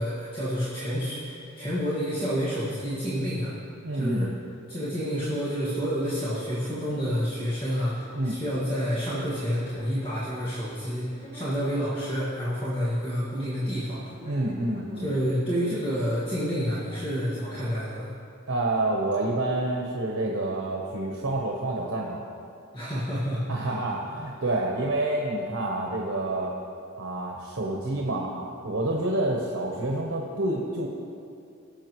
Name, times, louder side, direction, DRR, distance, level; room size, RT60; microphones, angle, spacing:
voice 1, 0.0-3.5 3.9-4.3 4.7-14.1 15.0-18.1 22.7-23.8, equal, 25° left, -10 dB, 1.8 m, -29 dB
voice 2, 3.8-4.3 8.1-8.4 14.2-15.1 18.5-22.2 23.5-26.5 27.0-30.9, right 2 dB, 85° right, -1 dB, 1.0 m, -28 dB
sound 1, 6.9-18.1, left 1 dB, 55° left, 2.0 m, -50 dB
18.0 x 7.2 x 3.1 m, 2.5 s
head